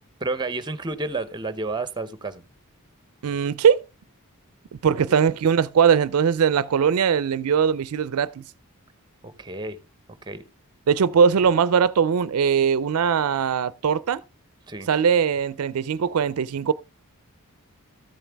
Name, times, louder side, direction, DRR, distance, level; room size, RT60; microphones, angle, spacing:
voice 1, 0.2-2.5 4.9-5.3 9.2-9.8 10.2-10.4 14.7-14.9, right 3 dB, 20° right, 0.6 m, -31 dB
voice 2, 3.2-3.8 4.8-8.4 10.9-14.2 14.9-16.7, right 7 dB, 75° right, 0.4 m, -20 dB
13.5 x 7.2 x 3.4 m
head